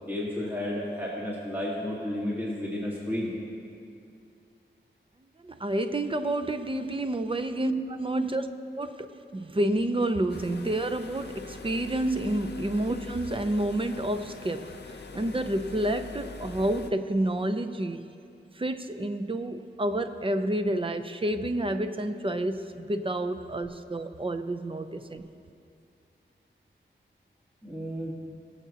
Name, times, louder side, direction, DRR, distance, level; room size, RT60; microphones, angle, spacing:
voice 1, 0.0-3.3 6.7-6.8 7.6-7.9 8.2-8.3 12.0-12.2 27.6-28.1, equal, 10° right, -6 dB, 1.7 m, -31 dB
voice 2, 5.4-8.4 8.8-9.1 9.3-18.1 18.5-25.3, right 1 dB, 25° right, 8 dB, 0.6 m, -29 dB
sound 1, 10.3-16.9, left 3 dB, 60° left, 0.6 m, -43 dB
21.5 x 7.3 x 2.9 m, 2.5 s
wide cardioid pair, 75°, 20 cm